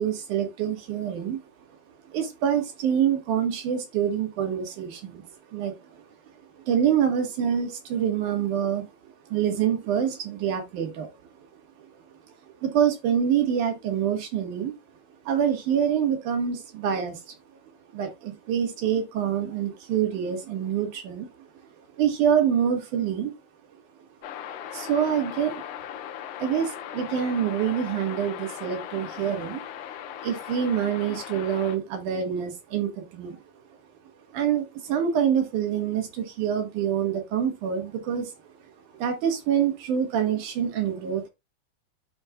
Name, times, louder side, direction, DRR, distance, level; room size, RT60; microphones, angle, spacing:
voice 1, 0.0-1.4 2.1-5.2 5.5-6.0 6.6-8.9 9.3-11.1 12.6-14.7 15.3-17.3 17.9-21.3 22.0-23.3 24.7-25.6 26.4-29.6 30.2-33.4 34.3-38.3 39.0-41.3, right 8 dB, 65° right, 2.9 m, -26 dB
sound 1, 24.2-31.8, left 10 dB, 75° left, 2.0 m, -38 dB
12.5 x 4.4 x 2.3 m
omnidirectional pair, 4.1 m